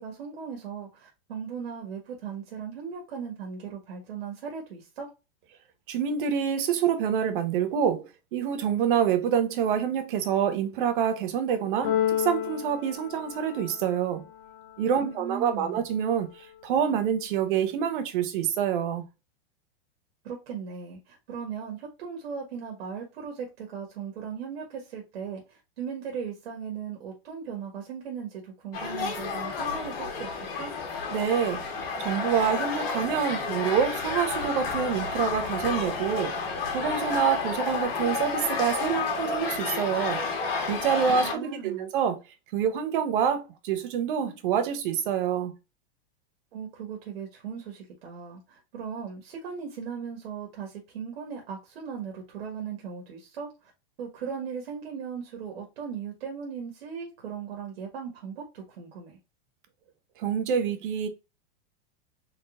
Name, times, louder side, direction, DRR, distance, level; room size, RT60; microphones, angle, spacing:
voice 1, 0.0-5.1 15.0-15.8 20.2-30.7 41.1-41.9 46.5-53.7 54.0-59.2, right 6 dB, 85° right, 1.7 m, -38 dB
voice 2, 5.9-14.3 14.8-19.0 31.1-31.6 32.0-36.4 36.7-40.2 40.7-42.2 42.5-45.5 60.2-61.1, right 8 dB, 60° right, 1.1 m, -27 dB
Keyboard (musical), 11.8-13.9, left 10 dB, 60° left, 1.8 m, -30 dB
sound 1, 28.7-41.3, left 4 dB, 80° left, 1.8 m, -31 dB
4.0 x 3.7 x 2.5 m
supercardioid pair, 155°, 30 cm